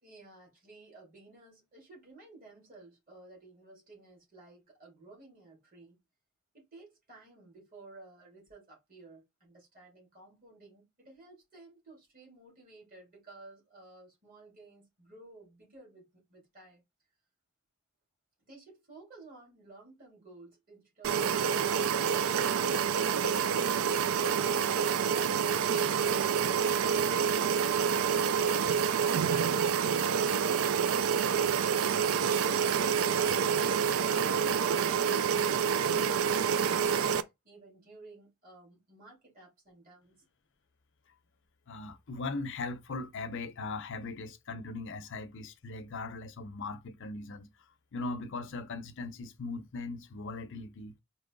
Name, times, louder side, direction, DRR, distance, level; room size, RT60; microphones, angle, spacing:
voice 1, 0.0-6.0 6.5-16.8 18.5-23.6 37.4-40.2, right 3 dB, 40° right, 2.7 m, -55 dB
sound 1, 21.0-37.2, right 7 dB, 75° right, 0.4 m, -27 dB
voice 2, 41.7-47.5 47.9-50.9, left 3 dB, 60° left, 0.6 m, -39 dB
4.5 x 3.0 x 3.8 m
head